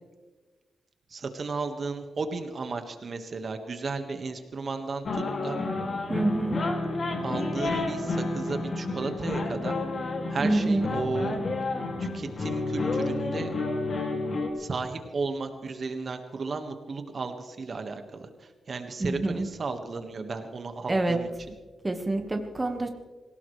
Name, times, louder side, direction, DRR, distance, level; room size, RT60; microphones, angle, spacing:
voice 1, 1.1-5.6 7.2-9.8 10.3-11.4 12.0-13.5 14.6-21.5, right 4 dB, 50° right, 6 dB, 1.6 m, -34 dB
sound 1, 5.0-14.5, left 2 dB, 50° left, 2.4 m, -30 dB
voice 2, 6.1-6.6 10.4-10.9 19.0-19.5 20.9-21.2 21.8-22.9, right 2 dB, 20° right, 4 dB, 1.5 m, -26 dB
25.5 x 17.0 x 3.3 m, 1.3 s
wide cardioid pair, 105°, 0 cm